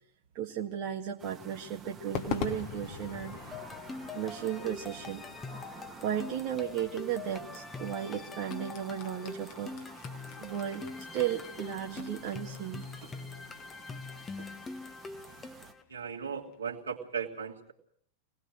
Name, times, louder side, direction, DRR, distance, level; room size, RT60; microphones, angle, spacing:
voice 1, 0.4-3.4 4.1-5.2 6.0-9.7 10.4-10.9 11.1-13.1 14.4-14.5, right 10 dB, 40° right, 1 dB, 1.7 m, -35 dB
sound 1, 1.2-15.7, right 6 dB, 20° right, 1.7 m, -51 dB
Crowd / Fireworks, 2.1-16.5, left 8 dB, 45° left, 2.4 m, -45 dB
sound 2, 3.5-15.8, left 3 dB, 15° left, 1.5 m, -44 dB
voice 2, 15.9-17.7, right 6 dB, 75° right, 0 dB, 2.8 m, -37 dB
25.0 x 19.5 x 6.4 m, 0.63 s
figure-of-eight pair, 90°, 0 cm